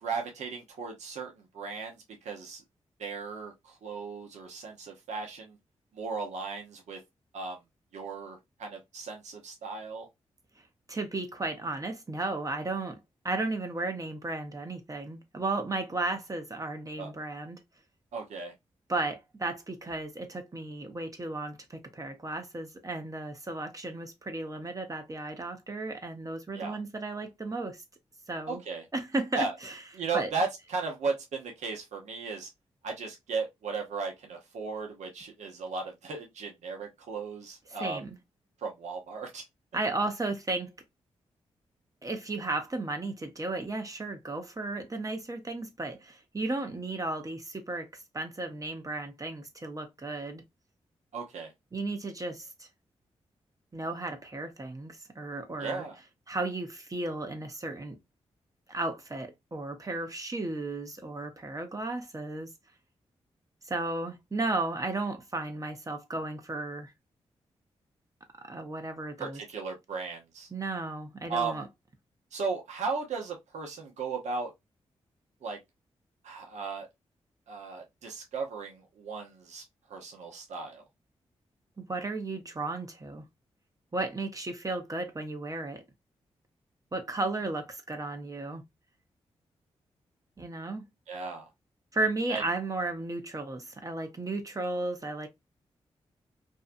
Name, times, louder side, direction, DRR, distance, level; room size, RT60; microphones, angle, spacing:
voice 1, 0.0-2.6 3.0-5.6 5.9-7.0 7.3-7.6 7.9-10.1 17.0-17.1 18.1-18.5 26.5-26.8 28.5-28.8 29.3-29.5 29.9-32.5 32.8-38.0 38.6-39.4 51.1-51.5 55.6-56.0 69.2-70.5 71.3-71.6 72.3-74.5 75.4-75.6 76.2-76.9 77.5-79.6 79.9-80.8 91.1-91.4 92.3-92.4, right 4 dB, 75° right, 0.8 m, -36 dB
voice 2, 10.9-13.0 13.2-17.6 18.9-27.8 28.3-28.6 28.9-29.8 30.1-30.3 37.7-38.2 39.7-40.7 42.0-50.4 51.7-52.7 53.7-55.9 56.3-58.0 58.7-62.5 63.6-66.9 68.4-69.4 70.5-71.6 81.8-83.2 83.9-85.8 86.9-88.6 90.4-90.8 91.9-95.3, right 2 dB, 30° right, 0.7 m, -34 dB
2.7 x 2.2 x 2.5 m
supercardioid pair, 45°, 12 cm